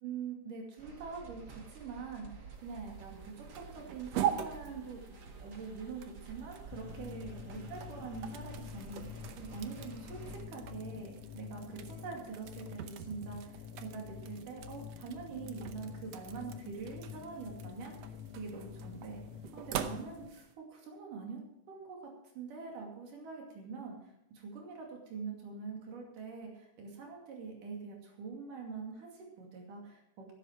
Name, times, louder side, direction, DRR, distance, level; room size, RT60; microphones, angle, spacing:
voice 1, 0.0-5.0 5.3-19.2 19.5-21.4 21.7-22.0 22.4-30.3, right 5 dB, 90° right, 0 dB, 4.1 m, -44 dB
sound 1, 0.8-10.4, right 4 dB, 40° right, 1.8 m, -51 dB
sound 2, 2.5-20.5, right 9 dB, 70° right, 1.8 m, -43 dB
sound 3, 6.7-20.3, left 8 dB, 75° left, 1.9 m, -48 dB
13.5 x 11.5 x 4.7 m, 0.83 s
omnidirectional pair, 3.6 m